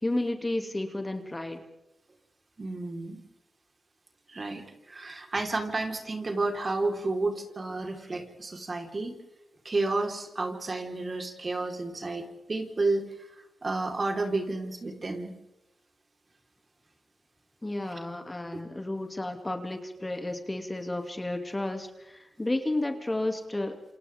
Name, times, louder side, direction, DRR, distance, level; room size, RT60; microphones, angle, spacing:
voice 1, 0.0-1.6 17.6-23.8, left 1 dB, 20° left, 5 dB, 2.9 m, -32 dB
voice 2, 2.6-3.2 4.3-9.2 9.6-13.3 13.6-15.3 18.5-18.6, right 3 dB, 45° right, 3 dB, 4.6 m, -31 dB
28.0 x 28.0 x 3.8 m, 0.93 s
cardioid pair, 60°, 0 cm